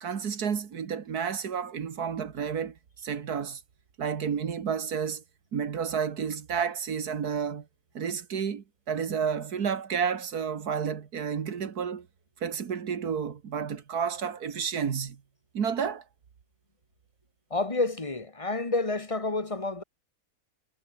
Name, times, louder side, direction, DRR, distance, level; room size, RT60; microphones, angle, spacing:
voice 1, 0.0-2.8 3.0-3.6 4.0-5.2 5.5-7.7 7.9-12.1 12.4-15.2 15.5-16.0, right 7 dB, 85° right, 2.1 m, -31 dB
voice 2, 17.5-19.8, left 3 dB, 20° left, 1.6 m, -29 dB
omnidirectional pair, 1.6 m